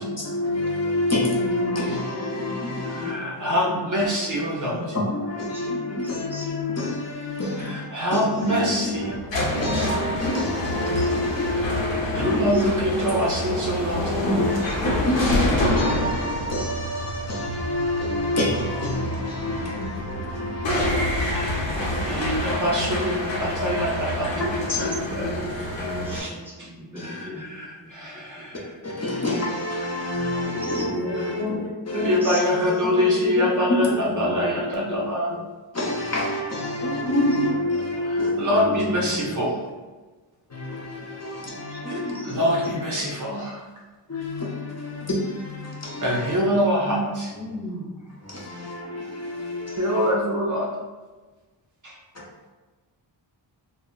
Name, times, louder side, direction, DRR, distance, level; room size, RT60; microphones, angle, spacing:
voice 1, 0.0-3.5 4.3-4.5 4.9-7.8 8.1-9.1 9.5-12.7 14.2-22.3 24.5-25.4 26.9-27.2 28.8-32.2 33.7-33.8 34.1-34.5 34.9-35.0 35.7-38.8 39.2-39.3 40.5-42.6 44.1-46.3 46.9-47.0 48.2-50.1, left 1 dB, 35° left, 0.6 m, -28 dB
voice 2, 1.4-3.7 4.2-4.3 5.5-6.4 8.3-8.9 9.7-10.2 11.9-12.6 14.6-15.4 24.3-27.5 27.8-27.9 28.1-28.4 30.4-33.6 33.9-34.7 36.8-37.2 41.7-42.3 47.3-48.0 48.6-48.7, equal, 5° right, 0.9 m, -36 dB
voice 3, 2.8-5.0 7.6-9.1 11.3-11.9 12.1-14.1 20.1-20.2 21.2-21.6 22.1-25.4 26.1-26.3 26.6-26.7 26.9-28.8 31.9-35.4 38.0-39.6 42.2-43.6 46.0-47.3 49.8-50.7 51.8-52.0, equal, 45° right, 0.5 m, -25 dB
sound 1, 8.8-26.2, left 1 dB, 70° left, 0.8 m, -27 dB
2.1 x 2.1 x 3.6 m
cardioid pair, 45°, 46 cm